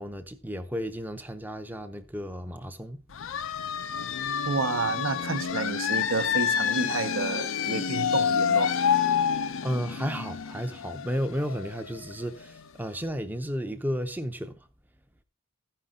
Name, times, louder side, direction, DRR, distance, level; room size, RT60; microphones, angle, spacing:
voice 1, 0.0-3.0 9.6-14.6, equal, 10° right, 0.6 m, -33 dB
sound 1, 3.1-12.6, left 7 dB, 65° left, 0.5 m, -28 dB
voice 2, 4.4-8.7, right 4 dB, 65° right, 0.8 m, -30 dB
14.5 x 5.6 x 3.7 m
head